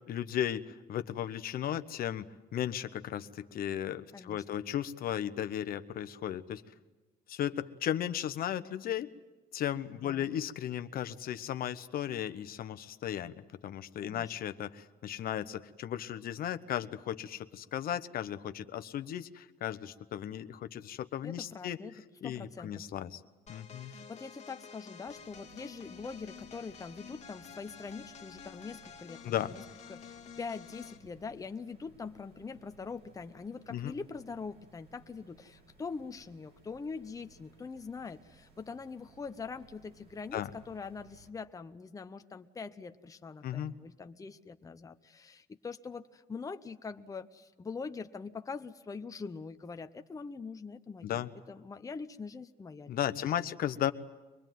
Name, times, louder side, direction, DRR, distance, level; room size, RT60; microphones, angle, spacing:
voice 1, 0.1-6.6 7.3-9.1 9.5-13.3 13.6-21.8 22.2-23.2 23.5-23.9 29.2-29.5 33.7-33.9 40.3-40.5 43.4-43.7 51.0-51.3 52.9-53.9, left 10 dB, 60° left, 11 dB, 1.0 m, -35 dB
voice 2, 4.1-4.6 10.0-10.3 14.0-14.3 21.2-21.9 22.2-22.9 23.8-29.6 29.9-53.0, left 4 dB, 20° left, 8 dB, 0.8 m, -43 dB
sound 1, 23.5-31.1, left 7 dB, 40° left, 1.9 m, -50 dB
sound 2, 25.0-41.3, right 4 dB, 75° right, 4.5 m, -62 dB
24.5 x 21.0 x 9.3 m, 1.1 s
cardioid pair, 110°, 17 cm